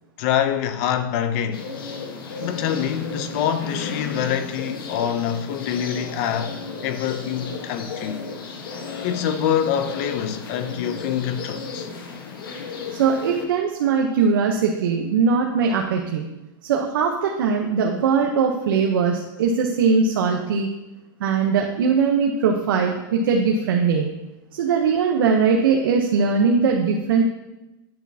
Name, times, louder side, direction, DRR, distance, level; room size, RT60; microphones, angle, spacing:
voice 1, 0.2-1.7 2.4-8.2 9.0-11.9, left 9 dB, 40° left, 0.5 m, -25 dB
sound 1, 1.5-13.5, left 4 dB, 90° left, 1.3 m, -34 dB
voice 2, 12.9-16.2 16.6-20.7 21.2-24.1 24.5-27.2, right 5 dB, 80° right, 0.9 m, -20 dB
9.8 x 6.1 x 2.8 m
supercardioid pair, 170°, 11 cm